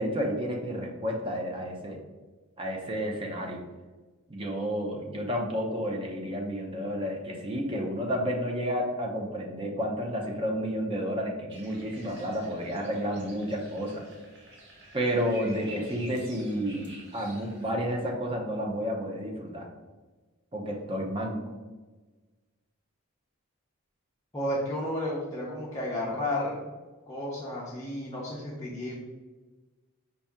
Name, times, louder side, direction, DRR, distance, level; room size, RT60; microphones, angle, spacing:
voice 1, 0.0-2.0 2.6-3.6 4.3-14.0 14.9-19.7 20.5-21.4, equal, 25° right, 0 dB, 0.6 m, -31 dB
sound 1, 11.5-17.7, right 2 dB, 50° right, 1.2 m, -49 dB
voice 2, 24.3-26.7 27.1-28.9, left 1 dB, 15° left, -7 dB, 0.7 m, -32 dB
5.4 x 2.8 x 3.5 m, 1.3 s
head